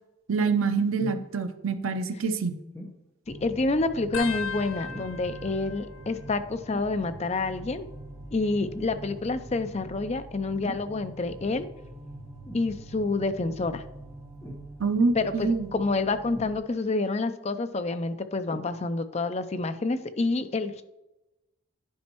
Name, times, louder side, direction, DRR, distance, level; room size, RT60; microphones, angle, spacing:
voice 1, 0.3-2.6 14.8-15.7, right 4 dB, 75° right, 9 dB, 0.6 m, -26 dB
sound 1, 1.0-1.3 2.7-3.0 4.9-5.3 6.7-7.0 8.7-9.0 10.6-10.9 12.5-12.7 14.4-14.7 16.3-16.9 18.5-18.7 19.5-19.6, equal, 15° left, 1.0 m, -40 dB
sound 2, 3.2-16.6, right 1 dB, 15° right, 2.1 m, -44 dB
voice 2, 3.4-7.9 8.3-11.7 12.5-13.8 15.1-20.8, left 3 dB, 30° left, 10 dB, 0.4 m, -28 dB
sound 3, 4.1-7.3 7.6-8.2 9.2-10.7 11.3-11.6 12.8-13.2 14.7-14.8, left 5 dB, 80° left, 0.6 m, -41 dB
10.5 x 5.3 x 3.0 m, 0.96 s
head